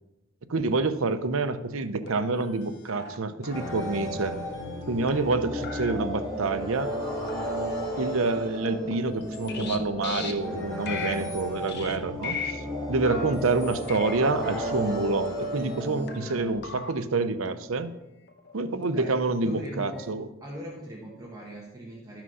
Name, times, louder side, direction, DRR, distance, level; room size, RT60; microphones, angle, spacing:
voice 1, 0.5-4.4 4.9-6.9 8.0-17.9 18.5-20.3, right 3 dB, 75° right, 11 dB, 0.7 m, -27 dB
sound 1, 2.1-2.6 2.9-3.2 3.4-3.7 4.3-4.8 5.1-5.4 5.6-5.9 6.5-6.7 7.2-7.6 7.8-8.1 8.7-9.8 10.0-10.3 10.8-11.4 11.7-12.0 12.2-12.5 13.0-14.2 14.4-14.7 15.2-15.8 16.1-16.4 16.6-16.9 17.4-17.5 18.3-18.5 18.8-19.1 19.6-20.1, left 4 dB, 55° left, 1.1 m, -39 dB
sound 2, 3.5-16.5, equal, 20° left, 3.8 m, -33 dB
voice 2, 19.4-20.0 20.4-22.2, equal, 20° right, -4 dB, 1.4 m, -40 dB
12.5 x 6.0 x 5.5 m, 1.0 s
head